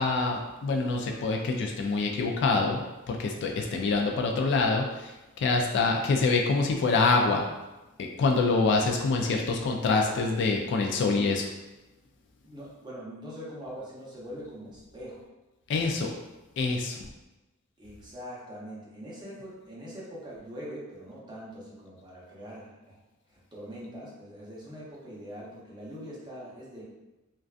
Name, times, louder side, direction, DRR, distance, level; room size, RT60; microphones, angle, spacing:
voice 1, 0.0-7.5 8.0-11.5 15.7-16.1 16.6-17.1, left 3 dB, 55° left, 2 dB, 0.3 m, -26 dB
voice 2, 12.4-15.3 17.8-23.0 23.3-26.8, equal, 20° right, -6 dB, 0.7 m, -43 dB
2.5 x 2.2 x 2.4 m, 1.0 s
head